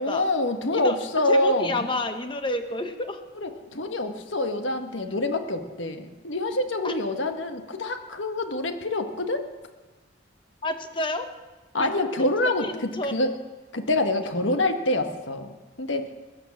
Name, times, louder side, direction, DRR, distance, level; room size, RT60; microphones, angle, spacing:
voice 1, 0.0-1.9 3.4-9.4 11.7-13.3 13.7-16.0, left 2 dB, 75° left, 6 dB, 1.6 m, -26 dB
voice 2, 1.3-3.2 6.8-6.9 10.6-11.3 11.8-11.9 12.6-13.1, left 2 dB, 25° left, 7 dB, 1.3 m, -29 dB
21.0 x 9.1 x 7.4 m, 1.2 s
head